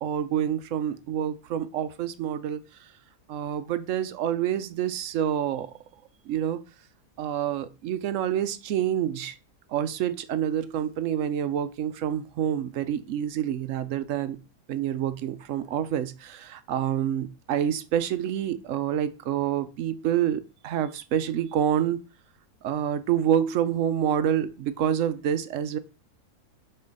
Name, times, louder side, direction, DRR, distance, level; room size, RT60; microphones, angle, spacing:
voice 1, 0.0-2.6 3.3-5.7 6.3-6.6 7.2-9.4 9.7-14.4 14.7-22.0 22.6-25.8, right 10 dB, 65° right, 12 dB, 0.8 m, -27 dB
5.6 x 3.3 x 5.2 m, 0.32 s
omnidirectional pair, 1.6 m